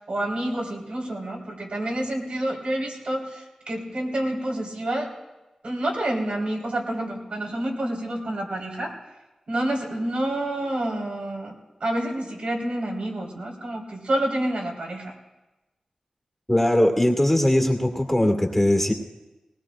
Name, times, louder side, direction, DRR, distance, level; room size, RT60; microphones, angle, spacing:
voice 1, 0.0-5.1 5.6-8.9 9.5-11.5 11.8-15.1, right 1 dB, 75° right, -3 dB, 4.2 m, -28 dB
voice 2, 16.5-18.9, left 1 dB, 10° left, 3 dB, 2.1 m, -20 dB
20.0 x 19.5 x 2.5 m, 1.1 s
cardioid pair, 50°, 2 cm